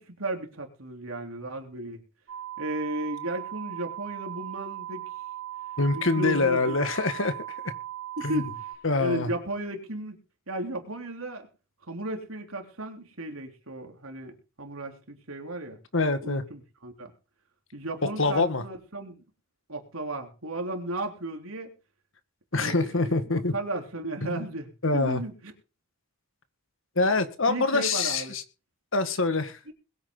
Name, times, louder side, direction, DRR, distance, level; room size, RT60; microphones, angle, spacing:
voice 1, 0.0-2.0 2.6-5.1 5.9-6.8 8.2-8.7 9.0-10.2 10.5-11.5 11.8-15.8 16.2-17.1 17.7-19.2 19.7-21.7 22.6-25.5 27.5-28.4 29.7-29.8, right 1 dB, 80° right, 3 dB, 3.5 m, -35 dB
sound 1, 2.3-8.7, right 13 dB, 65° right, 3.3 m, -38 dB
voice 2, 5.8-7.3 8.2-8.4 8.8-9.3 15.9-16.4 18.2-18.6 22.5-23.5 24.8-25.2 27.0-28.4 28.9-29.6, left 3 dB, 65° left, 10 dB, 1.8 m, -25 dB
21.5 x 8.8 x 3.9 m, 0.33 s
head